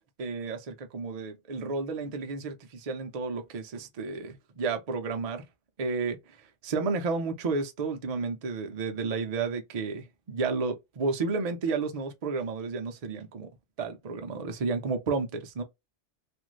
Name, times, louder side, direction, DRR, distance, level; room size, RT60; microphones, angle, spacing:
voice 1, 0.2-5.5 5.8-6.2 6.6-13.5 13.8-15.6, right 4 dB, 55° right, 0.4 m, -32 dB
2.5 x 2.5 x 3.0 m
omnidirectional pair, 1.3 m